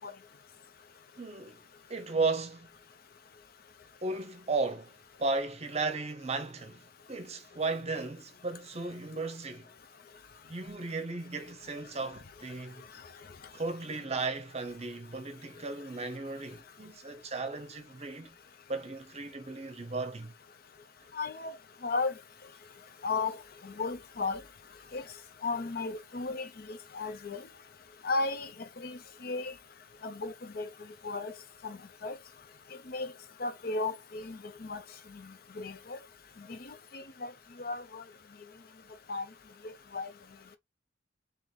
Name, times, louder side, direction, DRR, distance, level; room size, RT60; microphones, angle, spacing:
voice 1, 1.2-1.6 1.9-2.7 4.0-9.7 10.5-12.9 13.5-18.4 18.7-20.3, right 3 dB, 35° right, 0.7 m, -35 dB
voice 2, 21.1-21.6 21.8-22.1 23.0-23.4 23.6-24.4 24.9-25.0 25.4-27.4 28.0-28.5 28.8-29.5 30.0-30.7 31.0-31.3 31.6-32.2 32.9-33.1 33.4-34.8 35.1-35.2 35.6-36.0 36.5-37.3 37.6-38.0 39.1-39.2 39.6-40.1, left 3 dB, 55° left, 0.6 m, -35 dB
3.8 x 3.0 x 3.0 m
head